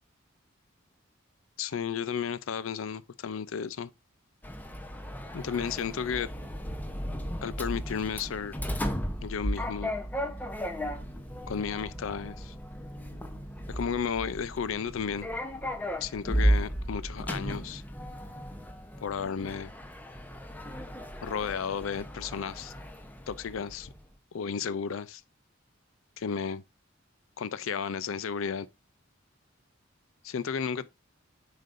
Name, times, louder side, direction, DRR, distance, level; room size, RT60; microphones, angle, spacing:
voice 1, 1.6-3.9 5.3-6.3 7.4-8.6 9.2-9.9 11.5-12.5 13.7-15.3 16.0-17.8 19.0-19.7 21.2-22.7 23.3-23.9 24.3-25.2 26.2-26.6 27.4-28.7 30.2-30.9, left 6 dB, 90° left, 0.5 m, -33 dB
Sliding door, 4.4-24.0, equal, 10° left, 0.8 m, -35 dB
7.5 x 5.1 x 2.6 m
head